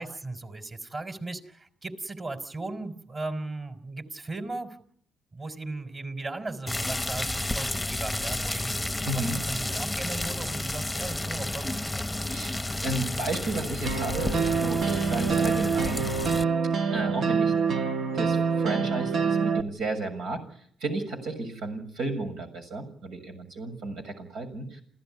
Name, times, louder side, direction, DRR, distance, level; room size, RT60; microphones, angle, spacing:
voice 1, 0.0-4.8 5.3-12.1, right 2 dB, 35° right, 7 dB, 4.2 m, -37 dB
sound 1, 6.7-16.4, left 1 dB, 5° left, 1.0 m, -31 dB
voice 2, 9.1-9.4 12.3-16.1 16.9-17.5 18.1-20.4 20.8-24.8, right 2 dB, 85° right, 4 dB, 6.9 m, -33 dB
sound 2, 13.9-19.6, right 5 dB, 60° right, 1.3 m, -26 dB
29.0 x 15.5 x 9.9 m, 0.66 s
cardioid pair, 90°, 0 cm